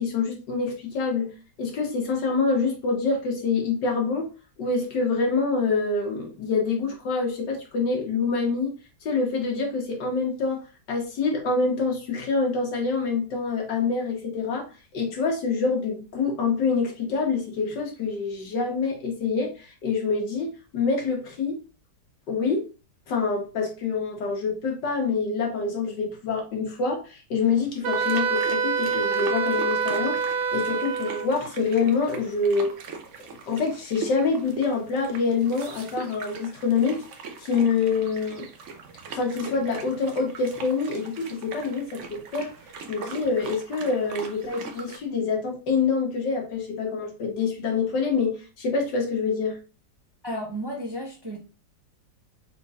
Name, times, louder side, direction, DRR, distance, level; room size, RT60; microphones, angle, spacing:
voice 1, 0.0-4.3 4.6-8.7 9.0-10.6 10.9-14.7 14.9-21.6 22.3-22.7 23.1-30.2 30.5-32.7 33.5-37.0 37.4-38.5 39.1-42.5 42.9-49.6, left 4 dB, 80° left, 1.9 m, -26 dB
Wind instrument woodwind instrument, 27.8-31.3, right 5 dB, 85° right, 1.3 m, -26 dB
sound 1, 27.9-45.0, right 5 dB, 55° right, 0.9 m, -41 dB
voice 2, 50.2-51.4, equal, 30° right, 0.4 m, -33 dB
4.5 x 4.1 x 2.4 m
omnidirectional pair, 1.9 m